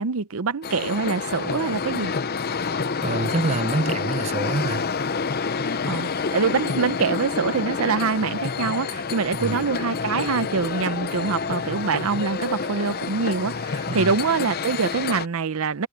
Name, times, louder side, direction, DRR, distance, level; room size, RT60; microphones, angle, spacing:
voice 1, 0.0-2.1 5.9-15.9, right 5 dB, 70° right, 0.7 m, -25 dB
sound 1, 0.6-15.3, left 5 dB, 45° left, 0.7 m, -28 dB
voice 2, 3.0-4.9 9.3-9.6 13.9-14.1, right 2 dB, 30° right, 0.6 m, -26 dB
head